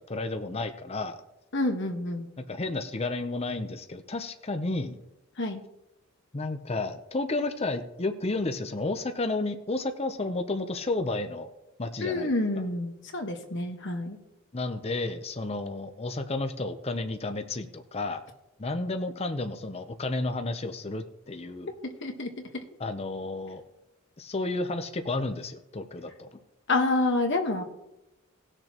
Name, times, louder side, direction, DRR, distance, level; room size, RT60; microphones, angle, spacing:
voice 1, 0.1-1.2 2.5-5.0 6.3-11.5 11.8-12.3 14.5-18.2 18.6-21.7 22.8-23.6 24.2-26.4, left 2 dB, 30° left, 8 dB, 0.7 m, -32 dB
voice 2, 1.5-2.3 5.4-5.6 12.0-14.2 21.8-22.6 26.7-27.6, left 2 dB, 60° left, 4 dB, 1.4 m, -28 dB
18.5 x 6.6 x 3.0 m, 0.90 s
head